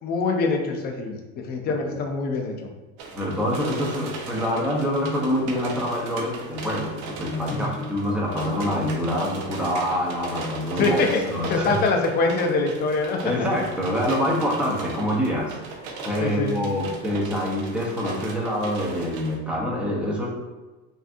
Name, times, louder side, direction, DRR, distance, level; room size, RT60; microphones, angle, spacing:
voice 1, 0.0-2.5 7.4-7.8 10.8-11.2 11.5-13.2 16.2-16.6, left 3 dB, 30° left, 2 dB, 0.5 m, -24 dB
sound 1, 3.0-19.4, right 3 dB, 75° right, 1.0 m, -38 dB
voice 2, 3.1-11.0 11.2-11.7 13.2-15.6 16.0-20.3, equal, 5° right, -4 dB, 0.7 m, -26 dB
5.8 x 2.6 x 2.6 m, 1.2 s
cardioid pair, 165°, 33 cm